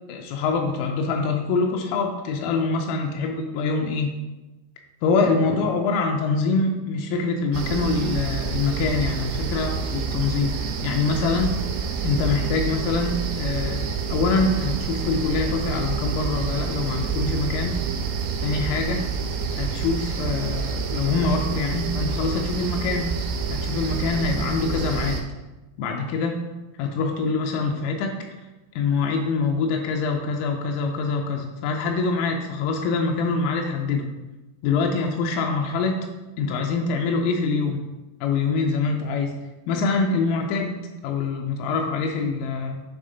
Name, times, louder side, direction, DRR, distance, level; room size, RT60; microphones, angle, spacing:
voice 1, 0.1-4.2 5.0-11.6 12.0-17.8 18.4-19.1 19.6-23.2 23.5-25.2 25.8-26.5 26.8-28.2 28.8-34.1 34.6-36.1 36.4-37.8 38.2-39.4 39.7-42.8, left 4 dB, 85° left, 2 dB, 3.2 m, -25 dB
sound 1, 7.5-25.2, right 5 dB, 85° right, 3.4 m, -28 dB
10.0 x 3.4 x 3.9 m, 1.1 s
omnidirectional pair, 5.7 m